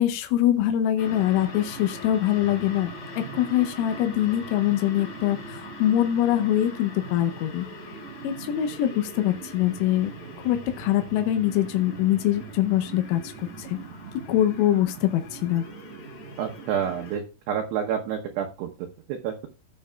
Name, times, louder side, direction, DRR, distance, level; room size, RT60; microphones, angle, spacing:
voice 1, 0.0-2.9 3.2-7.7 8.2-10.1 10.5-13.2 13.6-13.8 14.3-15.6, left 12 dB, 90° left, 7 dB, 3.4 m, -23 dB
sound 1, 1.0-17.2, right 1 dB, 40° left, 4.1 m, -40 dB
voice 2, 16.4-19.5, right 8 dB, 75° right, 2 dB, 2.6 m, -29 dB
18.0 x 6.5 x 2.3 m, 0.32 s
omnidirectional pair, 5.8 m